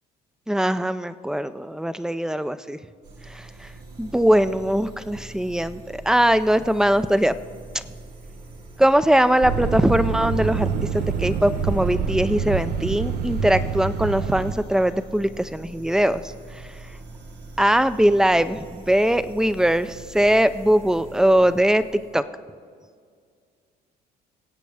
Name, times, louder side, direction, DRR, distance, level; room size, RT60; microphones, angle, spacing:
voice 1, 0.5-2.8 3.3-3.7 4.0-7.3 7.7-7.8 8.8-16.2 16.5-16.7 17.6-21.8 22.1-22.2, equal, 5° right, 13 dB, 0.5 m, -21 dB
sound 1, 3.0-22.2, right 2 dB, 85° right, 2.5 m, -43 dB
sound 2, 9.4-14.5, right 6 dB, 65° right, 0.8 m, -26 dB
23.0 x 8.3 x 3.4 m, 2.1 s
cardioid pair, 110°, 17 cm